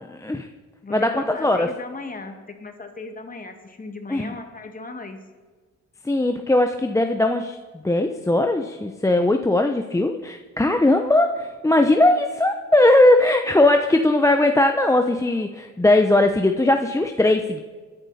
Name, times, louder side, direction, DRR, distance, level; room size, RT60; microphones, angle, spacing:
voice 1, 0.1-0.5 0.9-1.7 4.1-4.3 6.0-7.6 7.8-17.6, left 2 dB, 10° left, 5 dB, 0.8 m, -19 dB
voice 2, 0.8-5.2, left 3 dB, 30° left, 5 dB, 2.1 m, -37 dB
20.5 x 10.5 x 4.2 m, 1.4 s
cardioid pair, 90°, 30 cm